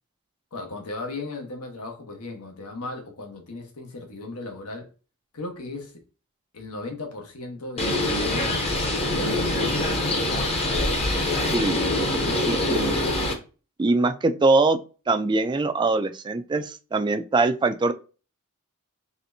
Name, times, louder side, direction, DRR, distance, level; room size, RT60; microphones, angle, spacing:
voice 1, 0.5-4.9 5.3-6.0 6.5-10.2, left 2 dB, 80° left, 1.1 m, -37 dB
Bird, 7.8-13.3, left 1 dB, 30° left, 0.8 m, -24 dB
voice 2, 11.5-13.0 13.8-14.8 15.1-17.9, right 3 dB, 20° right, 0.3 m, -23 dB
4.2 x 3.3 x 2.6 m
head